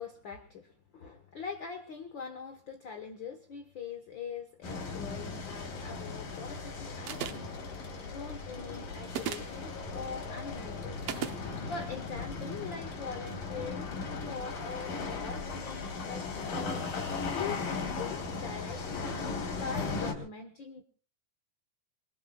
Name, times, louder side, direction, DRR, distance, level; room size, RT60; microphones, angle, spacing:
voice 1, 0.0-7.5 8.1-11.0 11.7-14.0 14.3-16.9 17.3-19.1 19.5-20.8, left 5 dB, 60° left, 7 dB, 1.2 m, -42 dB
sound 1, 4.6-20.1, left 4 dB, 80° left, 5.1 m, -37 dB
sound 2, 7.1-7.6 9.1-9.6 11.1-11.4, right 10 dB, 65° right, 1.7 m, -35 dB
26.0 x 23.5 x 2.3 m, 0.38 s
omnidirectional pair, 3.9 m